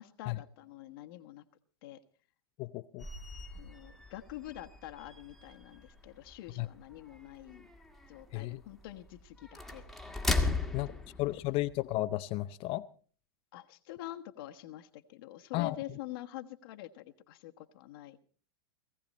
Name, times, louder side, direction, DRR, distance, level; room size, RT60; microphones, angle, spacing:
voice 1, 0.0-1.4 1.8-2.0 3.5-7.7 8.1-9.8 10.4-11.0 13.5-18.2, left 14 dB, 60° left, 6 dB, 1.3 m, -46 dB
voice 2, 2.6-3.1 6.6-6.7 8.3-8.6 10.7-10.9 11.2-12.9 15.5-15.8, left 17 dB, 45° left, 13 dB, 0.7 m, -33 dB
sound 1, 3.0-12.0, left 3 dB, ahead, 1.9 m, -38 dB
19.0 x 16.0 x 4.2 m, 0.43 s
hypercardioid pair, 105°, 14 cm